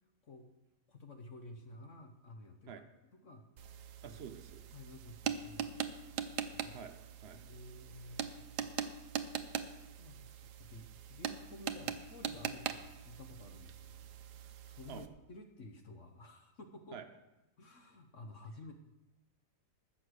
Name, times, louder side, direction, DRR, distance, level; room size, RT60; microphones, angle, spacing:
voice 1, 0.9-2.7 3.2-3.5 4.0-4.2 4.7-6.8 7.3-8.9 9.6-17.0 17.6-18.7, left 2 dB, 50° left, 6 dB, 1.1 m, -53 dB
sound 1, 3.6-15.1, right 9 dB, 70° right, 1.2 m, -42 dB
voice 2, 4.0-4.6 6.6-7.4 14.9-15.0 16.9-17.0, right 7 dB, 50° right, 8 dB, 0.7 m, -49 dB
14.0 x 6.5 x 6.4 m, 0.98 s
omnidirectional pair, 2.0 m